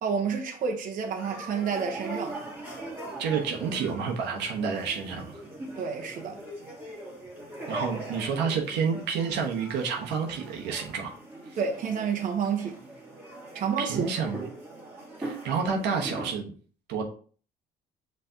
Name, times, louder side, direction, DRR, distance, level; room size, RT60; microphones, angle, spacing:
voice 1, 0.0-2.4 5.8-6.4 11.6-12.8 13.5-14.1, right 6 dB, 50° right, 0.9 m, -29 dB
sound 1, 1.0-16.3, right 2 dB, 10° right, 1.8 m, -41 dB
voice 2, 3.2-5.4 7.7-11.1 13.8-14.5 15.2-16.5 16.9-17.0, right 6 dB, 85° right, 1.1 m, -29 dB
5.6 x 3.3 x 2.8 m
cardioid pair, 110°, 17 cm